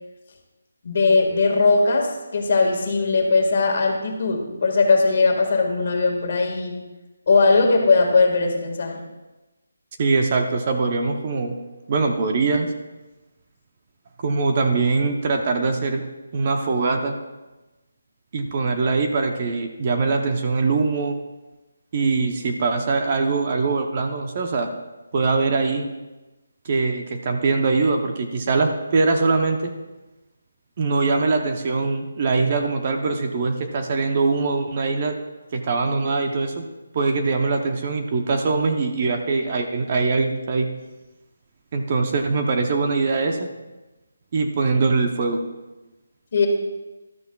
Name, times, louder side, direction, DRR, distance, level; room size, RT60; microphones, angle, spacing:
voice 1, 0.8-6.8 7.3-9.0 46.3-46.5, left 3 dB, 45° left, 2 dB, 1.8 m, -19 dB
voice 2, 10.0-11.5 11.9-12.7 14.2-16.0 16.3-17.2 18.3-21.2 21.9-24.7 25.1-25.9 26.6-29.7 30.8-35.1 35.5-36.7 36.9-40.7 41.7-43.5 44.3-45.4, right 4 dB, 30° right, 4 dB, 0.7 m, -22 dB
12.5 x 12.0 x 2.3 m, 1.1 s
hypercardioid pair, 170°, 0 cm